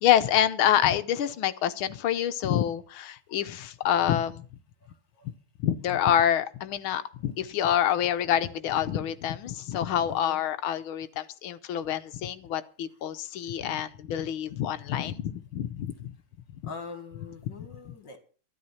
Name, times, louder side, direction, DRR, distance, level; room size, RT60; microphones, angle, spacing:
voice 1, 0.0-4.5 5.6-16.1 17.5-17.6 17.8-17.9, left 10 dB, 70° left, 12 dB, 1.6 m, -27 dB
voice 2, 4.8-5.3 10.1-10.4 16.6-18.2, left 4 dB, 55° left, 7 dB, 2.3 m, -43 dB
12.5 x 12.0 x 5.7 m, 0.40 s
omnidirectional pair, 2.4 m